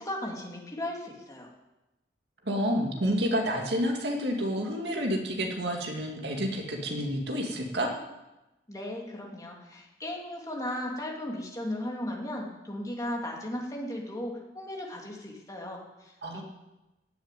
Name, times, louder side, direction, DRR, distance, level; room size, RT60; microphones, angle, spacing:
voice 1, 0.0-1.5 8.7-16.4, left 1 dB, 20° left, -1 dB, 2.8 m, -36 dB
voice 2, 2.5-7.9 16.2-16.4, equal, 65° right, 1 dB, 2.4 m, -29 dB
16.0 x 7.3 x 9.2 m, 1.0 s
head